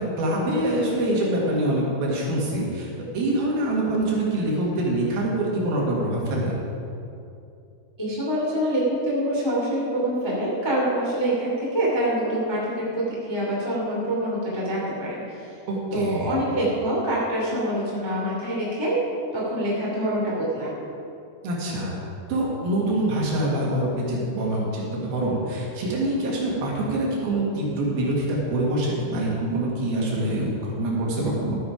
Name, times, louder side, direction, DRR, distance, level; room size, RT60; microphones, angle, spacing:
voice 1, 0.0-2.9 3.1-6.5 15.7-16.3 21.4-22.0 22.3-31.6, right 1 dB, 60° right, -4 dB, 3.3 m, -25 dB
voice 2, 8.0-15.6 15.9-19.0 19.3-20.7, right 1 dB, 20° left, -6 dB, 0.7 m, -25 dB
13.0 x 8.5 x 5.0 m, 2.6 s
omnidirectional pair, 5.5 m